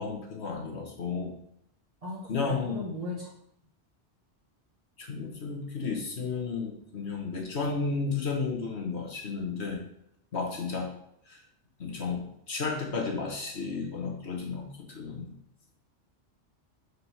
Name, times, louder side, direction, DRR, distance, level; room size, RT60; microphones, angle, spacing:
voice 1, 0.0-1.3 2.3-3.0 5.0-9.8 10.3-10.9 11.3-11.4 11.8-15.3, left 4 dB, 65° left, 1 dB, 1.6 m, -33 dB
voice 2, 2.0-3.3, left 1 dB, 30° right, -7 dB, 1.7 m, -37 dB
4.9 x 4.8 x 5.6 m, 0.73 s
omnidirectional pair, 1.2 m